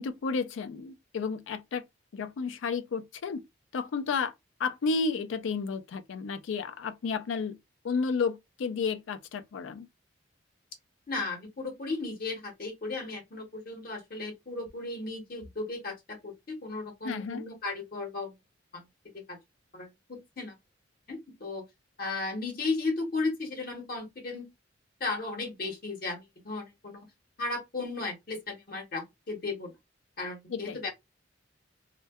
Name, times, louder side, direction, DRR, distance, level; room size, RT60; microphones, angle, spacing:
voice 1, 0.0-1.8 2.1-3.4 3.7-4.3 4.6-7.6 7.8-9.9 17.0-17.4 30.5-30.8, left 5 dB, 80° left, 0.4 m, -32 dB
voice 2, 11.1-18.3 18.7-18.8 19.3-19.4 19.7-20.5 21.1-21.6 22.0-24.5 25.0-27.1 27.4-29.7 30.2-30.9, left 3 dB, 50° left, 0.8 m, -35 dB
2.6 x 2.1 x 2.2 m
head